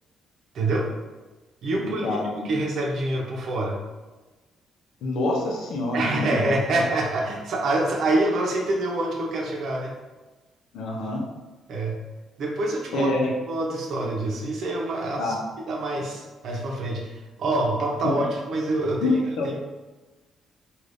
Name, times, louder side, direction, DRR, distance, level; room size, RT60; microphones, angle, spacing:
voice 1, 0.5-0.9 1.6-2.1 2.4-3.8 5.9-9.9 11.7-12.0 12.4-13.1 13.5-15.4 15.7-17.1 17.4-19.2 19.4-19.6, right 2 dB, 70° right, -1 dB, 0.7 m, -26 dB
voice 2, 1.8-2.5 5.0-6.3 6.7-6.8 10.7-11.2 12.9-13.3 15.2-15.4 18.0-18.2 19.0-19.6, left 2 dB, 85° left, -1 dB, 0.7 m, -26 dB
3.4 x 2.5 x 2.6 m, 1.2 s
cardioid pair, 90°, 0 cm